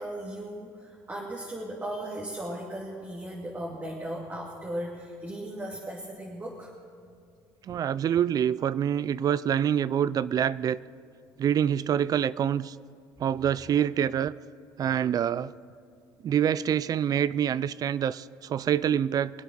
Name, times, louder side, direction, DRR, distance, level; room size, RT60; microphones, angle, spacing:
voice 1, 0.0-6.7, right 1 dB, 20° right, 2.4 m, -37 dB
voice 2, 7.7-10.8 11.4-12.8 13.2-14.3 14.8-15.5 16.2-19.3, right 9 dB, 45° right, 0.4 m, -26 dB
23.5 x 8.4 x 6.3 m
supercardioid pair, 90°, 9 cm